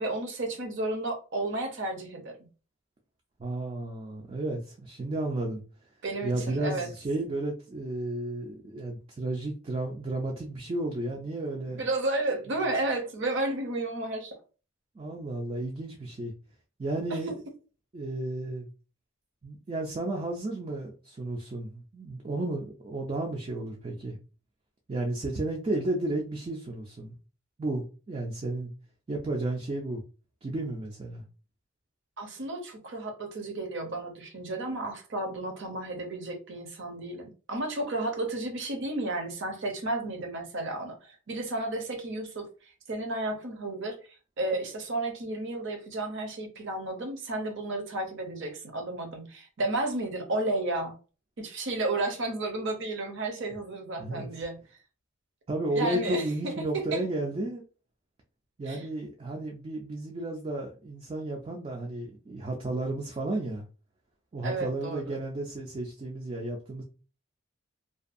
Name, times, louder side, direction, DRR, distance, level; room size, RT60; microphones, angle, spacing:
voice 1, 0.0-2.4 6.0-6.9 11.7-14.3 17.1-17.2 32.2-42.5 42.9-44.0 44.4-50.9 51.4-54.6 55.7-57.0 58.7-58.8 64.4-65.2, right 2 dB, 60° right, 4 dB, 0.7 m, -32 dB
voice 2, 3.4-5.6 6.2-11.8 15.0-16.3 16.8-17.3 17.9-18.7 19.4-24.2 24.9-27.1 27.6-28.7 29.1-30.0 30.4-31.2 54.0-54.4 55.5-57.6 58.6-63.6 64.3-66.8, right 2 dB, 25° right, 1 dB, 0.3 m, -33 dB
2.5 x 2.3 x 2.5 m, 0.35 s
head